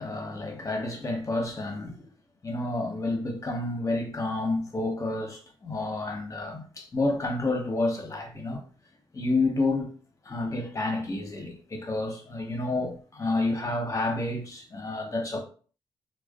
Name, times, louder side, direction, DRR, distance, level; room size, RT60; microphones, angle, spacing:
voice 1, 0.0-2.0 2.4-8.6 9.1-9.9 10.3-15.4, left 2 dB, 30° left, 0.8 m, -29 dB
2.4 x 2.1 x 2.4 m
supercardioid pair, 50°, 10 cm